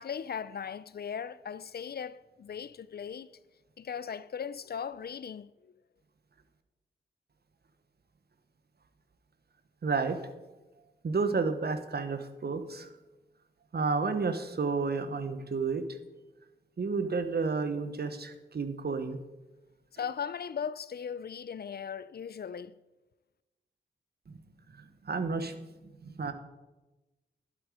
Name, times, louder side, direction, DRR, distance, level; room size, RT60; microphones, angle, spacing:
voice 1, 0.0-3.3 3.8-5.7 19.9-22.8, left 7 dB, 55° left, 0.4 m, -38 dB
voice 2, 9.8-10.2 11.0-12.9 13.7-15.8 16.8-19.2 24.3-24.4 24.8-25.5 26.0-26.3, right 4 dB, 55° right, 1.1 m, -31 dB
11.5 x 7.8 x 5.0 m
cardioid pair, 55°, 20 cm